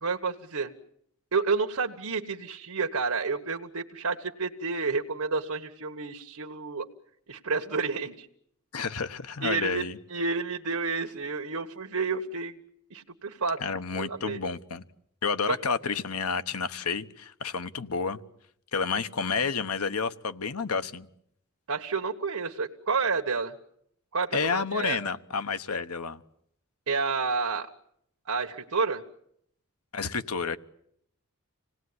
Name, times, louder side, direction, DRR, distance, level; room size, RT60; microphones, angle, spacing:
voice 1, 0.0-0.7 1.3-6.9 7.3-8.3 9.4-12.5 12.9-13.6 13.9-14.4 15.5-15.6 21.7-23.5 24.1-25.0 26.9-27.7 28.3-29.0, right 4 dB, 85° right, 4 dB, 1.4 m, -30 dB
voice 2, 8.7-10.0 13.6-14.8 15.2-18.2 18.7-21.1 24.3-26.2 29.9-30.6, left 5 dB, 90° left, 12 dB, 1.1 m, -30 dB
26.5 x 18.5 x 9.7 m, 0.73 s
head